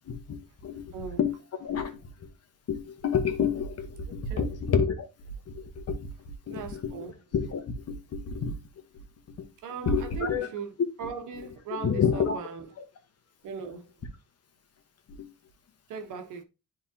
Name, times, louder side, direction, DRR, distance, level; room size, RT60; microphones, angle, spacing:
voice 1, 0.1-0.9 1.2-2.3 2.7-5.1 5.5-8.5 8.9-9.0 9.4-9.5 9.8-10.5 11.3-11.4 11.7-12.4 15.1-15.3, left 6 dB, 55° left, 1.3 m, -30 dB
voice 2, 4.1-4.5 6.5-7.1 9.6-10.7 11.0-12.6 13.4-13.9 15.9-16.4, right 6 dB, 85° right, 1.3 m, -38 dB
9.6 x 3.7 x 2.8 m
cardioid pair, 90°, 30 cm